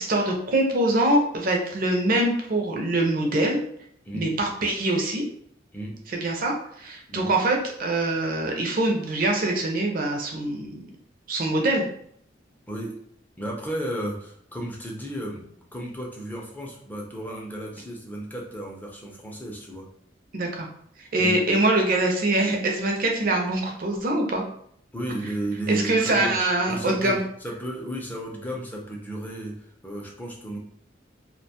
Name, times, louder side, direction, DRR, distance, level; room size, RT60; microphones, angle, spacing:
voice 1, 0.0-3.6 4.1-5.2 6.1-10.8 11.3-11.9 20.3-20.7 21.0-24.4 25.7-27.2, right 2 dB, 50° right, 1 dB, 0.5 m, -24 dB
voice 2, 12.7-13.0 13.4-19.8 21.2-21.4 24.9-26.3 26.7-30.6, right 1 dB, 10° left, -1 dB, 0.5 m, -33 dB
2.5 x 2.2 x 2.8 m, 0.65 s
head